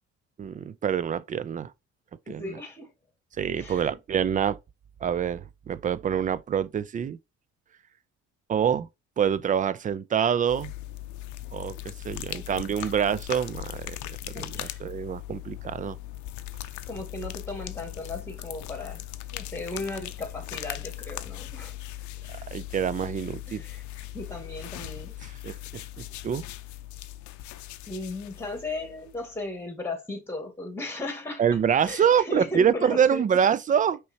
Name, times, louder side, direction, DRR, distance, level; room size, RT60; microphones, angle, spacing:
voice 1, 0.4-1.7 2.3-2.6 3.4-4.6 5.0-7.2 8.5-8.9 9.2-10.7 11.5-11.8 12.0-16.0 22.5-23.6 25.4-26.4 31.4-34.0, right 8 dB, 30° right, 0.4 m, -26 dB
voice 2, 2.3-2.9 3.6-4.0 12.3-12.9 14.2-14.8 16.9-19.0 19.3-21.8 23.5-23.8 24.1-25.1 27.9-31.4 31.8-33.2, left 2 dB, 10° left, 1.9 m, -36 dB
sound 1, 10.5-29.4, left 14 dB, 80° left, 0.6 m, -39 dB
5.5 x 3.2 x 2.8 m
cardioid pair, 100°, 29 cm